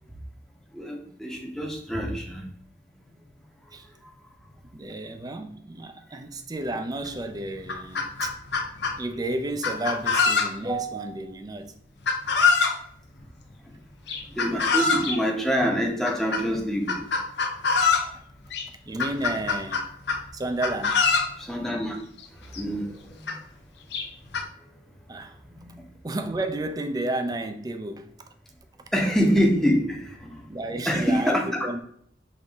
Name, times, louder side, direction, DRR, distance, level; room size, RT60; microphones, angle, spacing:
voice 1, 0.7-2.4 4.0-4.1 14.3-17.0 21.4-22.0 22.5-22.9 23.3-23.4 25.6-25.8 28.9-30.4 30.9-31.7, equal, ahead, 0.7 m, -25 dB
voice 2, 4.7-8.3 9.0-11.7 18.9-19.9 20.3-21.0 25.1-25.4 26.0-28.1 30.5-31.4 31.6-31.8, right 2 dB, 20° right, 0.4 m, -31 dB
Chicken rooster, 7.0-7.1 7.5-9.0 9.6-10.8 12.1-12.8 14.1-15.2 16.0-16.4 16.9-18.1 18.5-18.6 19.0-20.2 20.6-21.3 22.2-22.3 22.5-22.6 23.3-23.4 23.9-24.4, left 5 dB, 65° left, 0.6 m, -24 dB
5.4 x 2.6 x 3.5 m
head